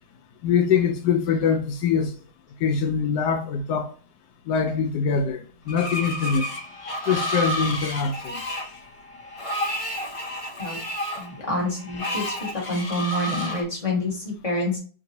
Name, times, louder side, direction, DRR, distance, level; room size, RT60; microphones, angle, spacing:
voice 1, 0.4-2.1 2.6-3.9 4.5-6.5 7.1-8.4, left 6 dB, 85° left, 1.2 m, -23 dB
Screech, 5.7-13.6, equal, 55° left, 0.3 m, -31 dB
voice 2, 11.1-12.2 12.7-14.8, left 1 dB, 25° left, 1.4 m, -27 dB
4.8 x 2.6 x 2.7 m
omnidirectional pair, 1.7 m